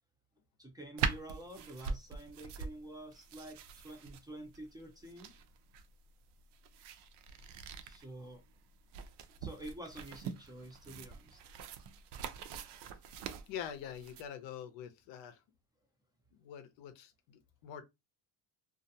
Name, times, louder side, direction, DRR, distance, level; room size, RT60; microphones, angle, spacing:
voice 1, 0.6-5.3 7.8-8.4 9.4-11.4, right 1 dB, 10° right, 0.5 m, -48 dB
sound 1, 1.0-14.2, right 6 dB, 65° right, 0.5 m, -43 dB
voice 2, 13.5-15.4 16.3-17.8, left 9 dB, 75° left, 0.7 m, -45 dB
2.4 x 2.1 x 2.7 m
cardioid pair, 115°, 45 cm